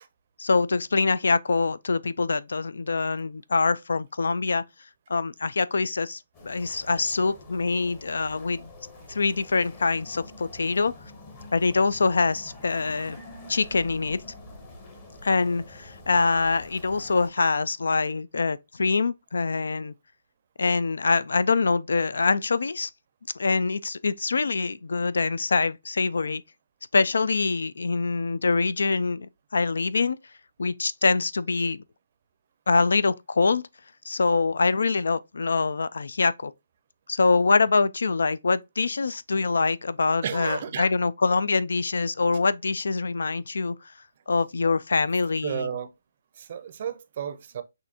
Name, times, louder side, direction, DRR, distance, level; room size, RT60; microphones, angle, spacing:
voice 1, 0.4-4.6 5.1-8.7 9.1-10.9 11.5-13.2 13.5-14.2 15.2-19.9 20.6-22.9 23.4-26.4 26.9-30.2 30.6-31.8 32.7-33.6 34.1-36.5 37.1-43.8 44.3-45.7, left 4 dB, 80° left, 0.4 m, -24 dB
sound 1, 6.3-17.3, left 2 dB, 20° left, 0.9 m, -46 dB
voice 2, 40.2-40.9 45.4-45.9 46.4-47.6, right 8 dB, 35° right, 0.5 m, -32 dB
6.1 x 2.6 x 2.8 m
hypercardioid pair, 170°, 0 cm